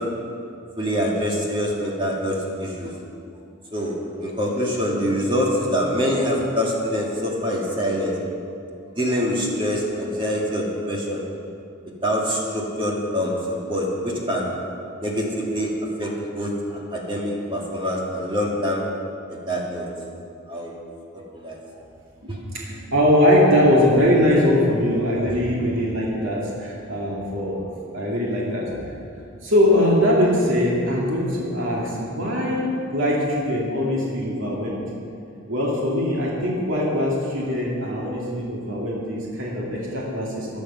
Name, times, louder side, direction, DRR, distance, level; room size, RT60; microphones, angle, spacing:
voice 1, 0.8-2.9 3.7-8.1 9.0-11.2 12.0-14.4 15.0-15.7 16.0-18.8 19.3-19.9 20.5-20.8 21.1-21.6 22.3-22.4, equal, 25° right, -2 dB, 2.0 m, -25 dB
voice 2, 22.2-27.6 27.9-28.7 29.4-34.8 35.5-40.6, left 1 dB, 65° right, -4 dB, 2.5 m, -21 dB
15.5 x 10.0 x 5.7 m, 2.5 s
head